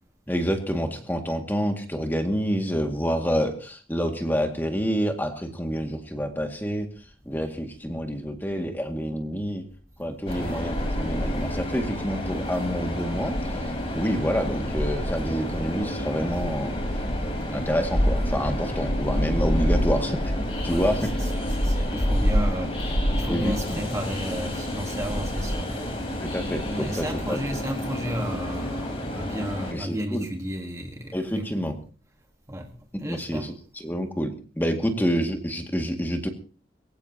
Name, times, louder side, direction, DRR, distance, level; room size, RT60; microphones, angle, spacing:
voice 1, 0.3-6.9 7.3-9.7 10.0-16.8 17.5-20.2 20.6-21.3 23.3-23.9 26.2-27.6 29.7-30.3 31.1-31.8 32.9-36.3, equal, 10° left, 2.0 m, -28 dB
Train, 10.3-29.7, equal, 30° left, 4.2 m, -28 dB
voice 2, 20.6-25.8 26.6-31.5 32.5-32.7 33.0-33.5 34.8-34.9, equal, 15° right, 1.4 m, -33 dB
23.0 x 15.5 x 2.9 m
head